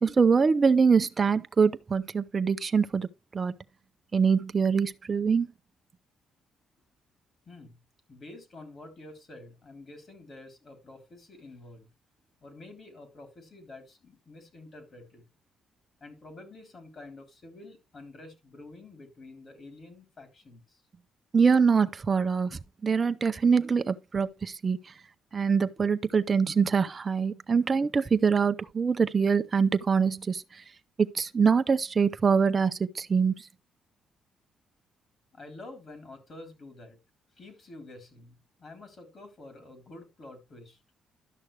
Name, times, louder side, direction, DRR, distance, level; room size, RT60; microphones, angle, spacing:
voice 1, 0.0-3.1 3.3-3.6 4.1-5.5 21.3-24.8 25.3-30.4 31.0-33.3, right 5 dB, 35° right, 0.7 m, -24 dB
voice 2, 7.5-7.8 8.1-11.9 12.4-15.3 16.0-20.8 35.3-37.0 37.4-40.8, left 2 dB, 45° left, 3.5 m, -48 dB
12.0 x 6.3 x 3.3 m
cardioid pair, 90°, 0 cm